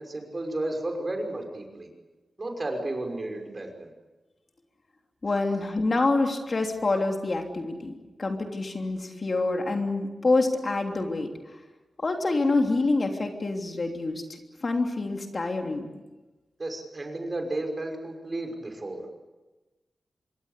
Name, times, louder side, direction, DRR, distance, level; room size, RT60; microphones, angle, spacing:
voice 1, 0.0-1.9 2.4-3.9 16.6-19.0, right 2 dB, 35° right, 4 dB, 5.9 m, -33 dB
voice 2, 5.2-11.3 12.0-14.2 14.6-15.8, left 2 dB, 45° left, 3 dB, 3.2 m, -26 dB
26.0 x 23.0 x 8.4 m, 1.1 s
wide cardioid pair, 90°, 0 cm